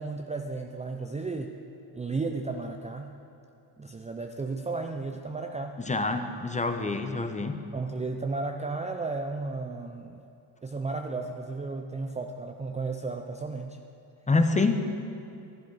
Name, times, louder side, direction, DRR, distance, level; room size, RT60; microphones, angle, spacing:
voice 1, 0.0-1.5 1.9-3.1 3.8-5.8 7.7-10.2 10.6-13.8, right 3 dB, 15° right, 4 dB, 0.5 m, -34 dB
voice 2, 5.9-7.6 14.3-14.8, left 3 dB, 15° left, 7 dB, 0.8 m, -26 dB
12.0 x 11.0 x 4.8 m, 2.7 s
cardioid pair, 90°, 49 cm